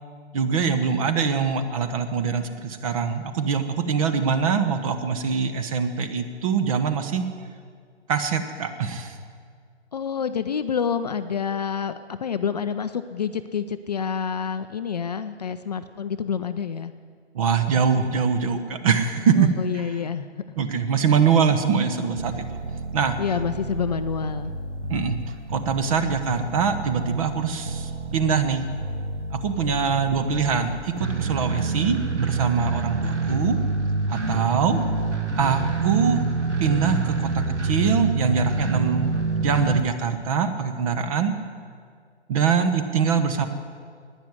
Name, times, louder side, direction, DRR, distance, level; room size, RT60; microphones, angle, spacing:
voice 1, 0.3-7.2 8.1-9.1 17.3-19.5 20.6-22.6 22.9-23.2 24.9-25.2 25.5-28.7 29.3-33.6 34.1-34.8 35.4-36.2 36.6-41.3 42.3-43.5, right 6 dB, 30° right, 9 dB, 1.0 m, -23 dB
voice 2, 9.9-16.9 19.4-20.4 22.7-22.8 23.2-24.5, left 7 dB, 35° left, 10 dB, 0.5 m, -28 dB
sound 1, 22.2-39.8, right 3 dB, 85° right, 1.3 m, -28 dB
11.5 x 9.9 x 9.7 m, 2.1 s
figure-of-eight pair, 130°, 34 cm